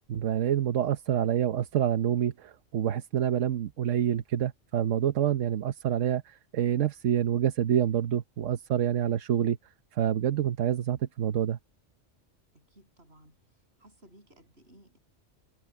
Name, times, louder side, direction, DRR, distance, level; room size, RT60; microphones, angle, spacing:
voice 1, 0.1-9.6 9.9-11.6, right 10 dB, 80° right, 1.2 m, -27 dB
voice 2, 12.5-13.4 13.8-15.0, right 1 dB, 55° right, 7.7 m, -57 dB
omnidirectional pair, 1.3 m